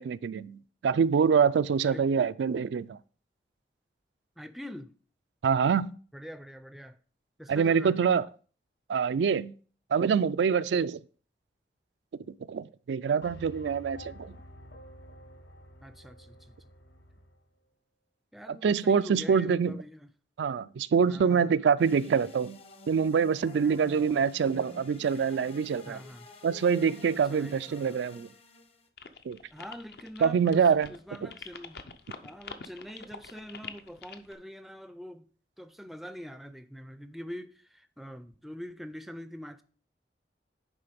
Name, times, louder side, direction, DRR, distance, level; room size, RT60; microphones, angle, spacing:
voice 1, 0.0-3.0 5.4-5.9 7.5-8.2 8.9-9.5 9.9-11.0 12.4-14.4 18.6-19.7 20.4-22.6 22.9-26.0 26.4-28.3 29.3-29.4 30.2-30.9, right 6 dB, 85° right, 0.3 m, -25 dB
voice 2, 4.4-4.9 6.1-7.0 7.4-8.1 15.8-16.7 18.3-20.1 21.1-22.2 23.5-24.1 25.9-26.3 27.1-28.0 29.5-31.8 32.2-35.3 35.6-39.6, equal, ahead, 0.4 m, -45 dB
sound 1, 13.2-17.4, equal, 90° left, 1.2 m, -50 dB
sound 2, 21.8-28.9, left 2 dB, 35° left, 0.8 m, -51 dB
sound 3, 29.0-34.3, left 5 dB, 65° left, 0.7 m, -45 dB
9.9 x 3.8 x 5.1 m
head